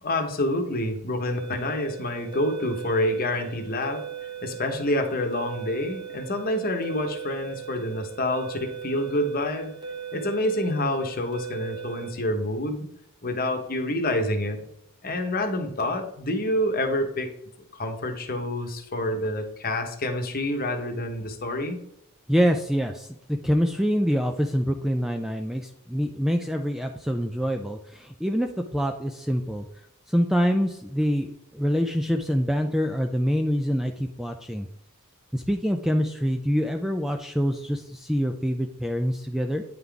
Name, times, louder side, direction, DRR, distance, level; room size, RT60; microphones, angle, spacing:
voice 1, 0.0-4.0 4.4-9.7 10.1-12.8 13.2-14.6 15.0-17.3 17.7-21.8, left 1 dB, 40° left, 4 dB, 1.0 m, -27 dB
sound 1, 1.4-12.1, right 7 dB, 20° right, 1.0 m, -39 dB
voice 2, 22.3-29.7 30.1-34.7 35.3-39.6, equal, ahead, 4 dB, 0.3 m, -25 dB
9.3 x 3.8 x 3.5 m, 0.79 s
head